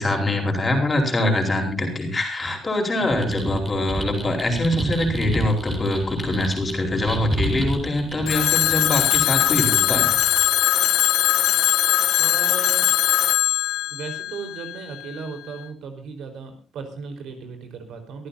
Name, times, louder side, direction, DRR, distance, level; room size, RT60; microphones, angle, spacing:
voice 1, 0.0-10.2, left 1 dB, 20° left, 2 dB, 4.5 m, -23 dB
voice 2, 3.0-3.3 12.2-13.0 13.9-18.3, right 5 dB, 65° right, 6 dB, 4.5 m, -36 dB
sound 1, 3.1-10.5, right 1 dB, 10° right, 3.6 m, -30 dB
Telephone, 8.3-15.1, left 12 dB, 75° left, 1.0 m, -20 dB
25.5 x 14.0 x 2.8 m, 0.32 s
cardioid pair, 160°, 0 cm